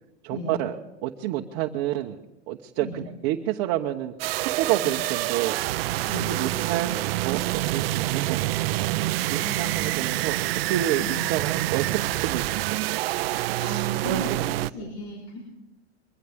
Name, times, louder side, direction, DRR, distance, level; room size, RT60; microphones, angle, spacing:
voice 1, 0.2-0.8 1.0-4.1 4.4-5.6 6.1-6.9 7.2-9.0 9.3-12.5 12.9-13.0 13.5-14.9, right 13 dB, 45° right, 2 dB, 1.0 m, -29 dB
sound 1, 4.2-14.7, right 17 dB, 65° right, 0.6 m, -27 dB
voice 2, 9.4-10.1 11.0-11.1 13.6-14.3 14.6-15.4, equal, 60° left, -2 dB, 4.0 m, -35 dB
22.5 x 16.5 x 3.6 m, 1.0 s
supercardioid pair, 155°, 32 cm